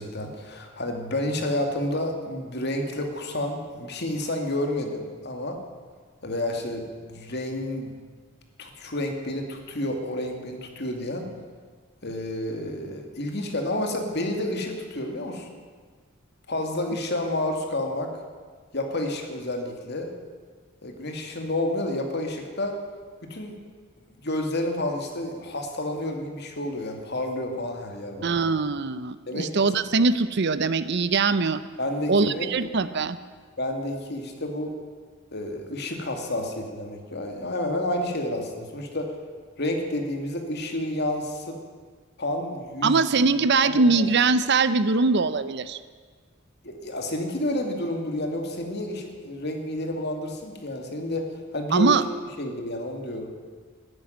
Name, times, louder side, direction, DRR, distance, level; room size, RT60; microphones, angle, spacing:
voice 1, 0.0-5.6 6.2-7.9 8.6-11.3 12.0-15.5 16.5-18.1 18.7-20.1 20.8-22.7 23.3-23.5 24.2-28.4 29.3-29.6 31.8-32.5 33.6-34.7 35.3-39.1 39.6-41.5 42.2-43.0 43.6-44.1 46.6-51.3 51.5-51.9 52.4-53.3, left 1 dB, 55° left, 3 dB, 2.3 m, -30 dB
voice 2, 28.2-31.6 32.1-33.2 42.8-45.8 51.7-52.0, right 4 dB, 55° right, 14 dB, 0.6 m, -22 dB
13.0 x 11.0 x 9.4 m, 1.5 s
head